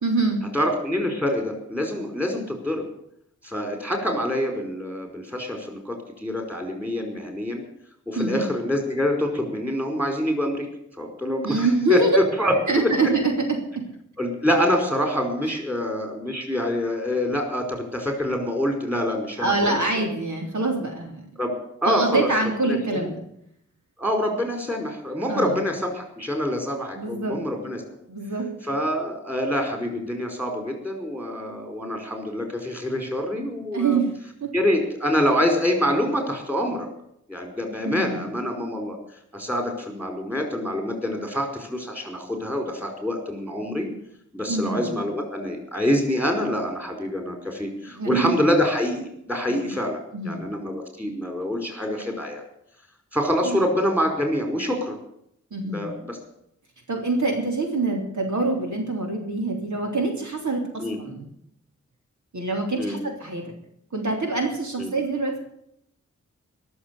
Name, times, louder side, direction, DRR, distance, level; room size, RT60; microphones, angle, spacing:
voice 1, 0.0-0.4 8.2-8.5 11.4-12.2 12.7-13.3 13.7-13.8 15.5-15.6 19.4-21.2 21.9-23.1 25.3-25.6 27.0-27.4 28.1-28.5 33.7-34.1 34.4-34.5 37.8-38.3 44.5-45.0 47.9-48.3 49.6-49.8 50.1-50.5 53.4-53.6 55.5-55.9 56.9-61.2 62.3-63.4 63.9-65.4, right 3 dB, 75° right, 0 dB, 3.6 m, -25 dB
voice 2, 0.5-2.8 3.4-6.0 6.2-7.6 8.1-10.6 11.0-12.5 12.8-12.9 14.2-20.1 21.4-21.5 21.8-22.3 22.7-23.1 24.0-27.8 28.7-34.0 34.5-36.9 37.3-39.0 39.3-43.9 44.3-52.4 53.1-55.0 55.7-56.2 60.8-61.0 62.8-63.0 64.8-64.9, left 1 dB, 5° right, 3 dB, 5.0 m, -26 dB
21.5 x 7.2 x 8.4 m, 0.73 s
wide cardioid pair, 90°, 29 cm